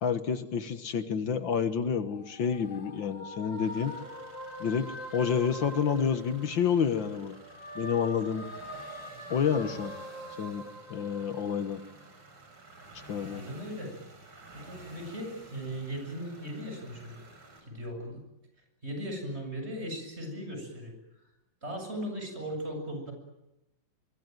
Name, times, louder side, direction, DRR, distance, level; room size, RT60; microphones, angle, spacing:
voice 1, 0.0-4.0 4.6-7.4 7.8-8.4 9.3-9.9 10.4-11.8 13.1-13.4, left 7 dB, 75° left, 10 dB, 2.1 m, -29 dB
sound 1, 1.9-6.9 7.3-12.0, equal, 40° left, 3.1 m, -43 dB
sound 2, 3.5-17.6, right 2 dB, 90° right, 7.0 m, -52 dB
voice 2, 13.3-14.0 14.5-17.2 17.6-18.2 18.8-20.9 21.6-23.1, equal, 30° right, 4 dB, 7.8 m, -38 dB
24.0 x 24.0 x 9.3 m, 0.97 s
omnidirectional pair, 2.1 m